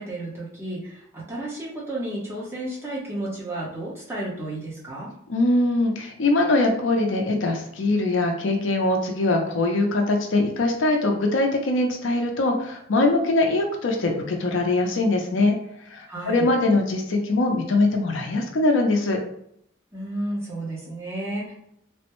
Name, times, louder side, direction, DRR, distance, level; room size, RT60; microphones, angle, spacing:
voice 1, 0.0-5.1 16.1-16.5 19.9-21.5, right 1 dB, 15° right, -5 dB, 0.9 m, -32 dB
voice 2, 5.3-15.5 15.9-19.2, left 2 dB, 80° left, 2 dB, 0.6 m, -22 dB
3.4 x 2.1 x 2.9 m, 0.71 s
head